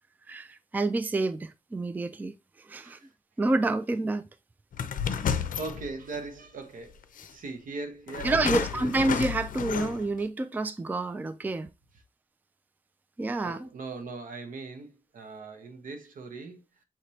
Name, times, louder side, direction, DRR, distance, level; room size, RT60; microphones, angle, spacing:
voice 1, 0.3-2.3 2.7-3.0 3.4-4.3 8.2-11.7 13.2-13.7, right 2 dB, 15° right, 0.3 m, -28 dB
sound 1, 4.7-6.3 7.2-7.3 8.1-10.2, left 7 dB, 80° left, 0.5 m, -31 dB
voice 2, 5.1-7.0 7.3-8.9 13.4-16.6, right 3 dB, 80° right, 0.9 m, -40 dB
5.8 x 3.1 x 2.7 m
wide cardioid pair, 135°, 14 cm